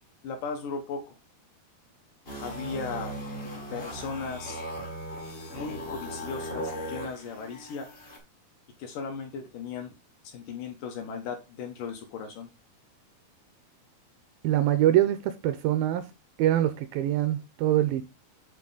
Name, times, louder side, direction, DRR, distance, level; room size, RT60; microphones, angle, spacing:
voice 1, 0.2-1.2 2.4-3.1 3.7-4.6 5.5-7.9 8.8-9.9 10.3-12.5, left 5 dB, 70° left, 2.2 m, -37 dB
sound 1, 2.2-8.2, equal, 40° left, 0.8 m, -38 dB
voice 2, 14.4-16.0 16.4-18.0, right 13 dB, 80° right, 2.2 m, -24 dB
8.6 x 4.0 x 3.8 m
omnidirectional pair, 4.5 m